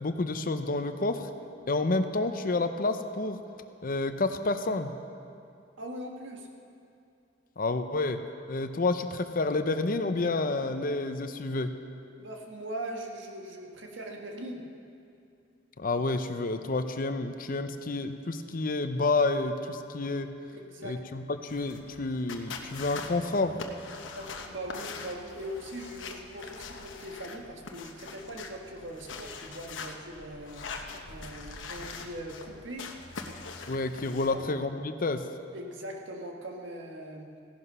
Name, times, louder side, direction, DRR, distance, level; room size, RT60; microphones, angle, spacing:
voice 1, 0.0-1.3 1.7-3.4 3.8-4.9 7.6-8.2 8.5-11.7 15.8-20.3 20.8-23.6 33.7-35.2, left 3 dB, 50° left, 9 dB, 0.7 m, -29 dB
voice 2, 5.8-6.5 12.2-14.6 20.5-21.0 24.1-32.9 34.3-34.5 35.5-37.3, right 1 dB, 75° right, 2 dB, 1.6 m, -41 dB
sound 1, 21.5-34.3, left 4 dB, 80° left, 1.0 m, -43 dB
16.0 x 11.0 x 5.5 m, 2.5 s
head